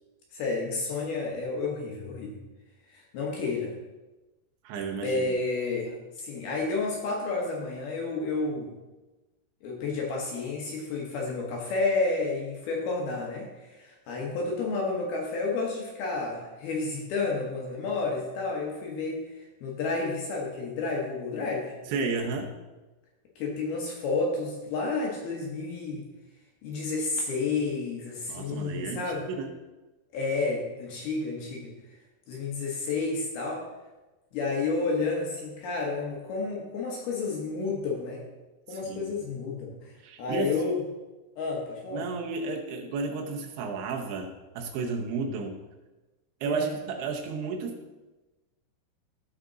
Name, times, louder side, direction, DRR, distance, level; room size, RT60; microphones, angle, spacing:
voice 1, 0.3-2.3 2.9-3.7 5.0-8.7 9.6-21.7 23.4-26.1 26.6-29.3 30.1-31.7 32.3-33.7 34.3-38.2 38.7-40.8 41.4-42.1 46.4-46.7, left 3 dB, 65° left, -1 dB, 2.7 m, -31 dB
voice 2, 4.6-5.3 21.9-22.5 28.3-29.5 38.7-39.1 40.0-40.6 41.9-45.6 46.4-47.8, right 4 dB, 80° right, 2 dB, 3.3 m, -32 dB
15.0 x 5.1 x 3.9 m, 1.1 s
omnidirectional pair, 5.5 m